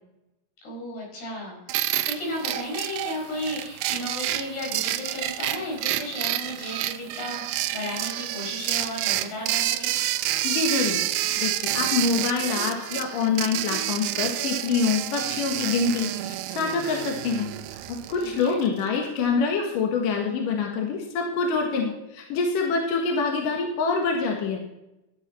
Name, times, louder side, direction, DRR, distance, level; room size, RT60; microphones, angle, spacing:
voice 1, 0.6-9.9 18.2-18.6, left 1 dB, 80° left, -2 dB, 6.8 m, -34 dB
sound 1, 1.7-18.7, right 14 dB, 80° right, 2.1 m, -29 dB
voice 2, 10.4-11.0 11.4-24.6, left 5 dB, 65° left, 1 dB, 2.9 m, -26 dB
13.5 x 9.0 x 4.3 m, 0.92 s
omnidirectional pair, 4.5 m